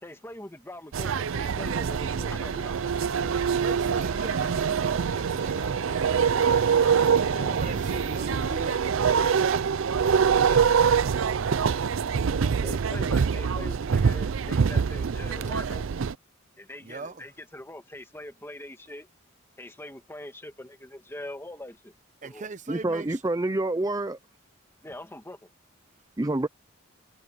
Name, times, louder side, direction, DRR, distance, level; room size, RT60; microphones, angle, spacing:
voice 1, 0.0-2.8 7.3-7.6 10.4-10.7 12.4-15.9 16.6-19.1 19.6-21.9 22.2-22.5 24.8-25.4, left 1 dB, 10° left, 2.1 m, -42 dB
sound 1, 0.9-16.1, right 6 dB, 65° right, 0.5 m, -24 dB
sound 2, 1.9-8.8, left 2 dB, 65° left, 3.7 m, -45 dB
voice 2, 3.2-6.8 7.3-9.8 16.8-17.3 22.2-23.2, right 3 dB, 35° right, 0.9 m, -40 dB
voice 3, 22.7-24.2 26.2-26.5, right 2 dB, 15° right, 0.5 m, -27 dB
head